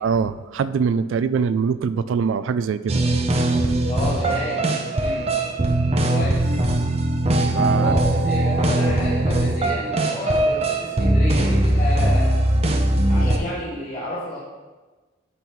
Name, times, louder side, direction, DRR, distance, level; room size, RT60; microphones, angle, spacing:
voice 1, 0.0-3.0 7.5-7.9, right 6 dB, 80° right, 13 dB, 0.3 m, -23 dB
sound 1, 2.9-13.4, right 1 dB, 30° right, 0.6 m, -20 dB
voice 2, 3.9-4.6 5.0-5.3 6.1-6.5 7.7-12.4 13.1-14.4, left 1 dB, 45° left, -10 dB, 2.8 m, -30 dB
12.5 x 5.4 x 3.1 m, 1.3 s
head